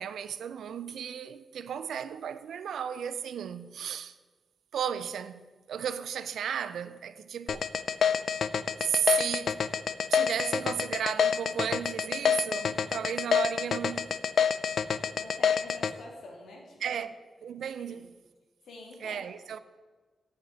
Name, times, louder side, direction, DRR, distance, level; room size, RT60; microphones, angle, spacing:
voice 1, 0.0-4.1 4.7-7.7 8.8-9.6 10.1-14.1 16.8-17.2 17.4-18.1 19.0-19.6, right 8 dB, 90° right, 0.5 m, -34 dB
sound 1, 7.5-15.9, left 7 dB, 55° left, 0.4 m, -27 dB
voice 2, 15.1-16.8 17.9-18.0 18.6-19.3, left 2 dB, 75° left, 2.5 m, -47 dB
9.0 x 6.0 x 7.9 m
wide cardioid pair, 160°, 0 cm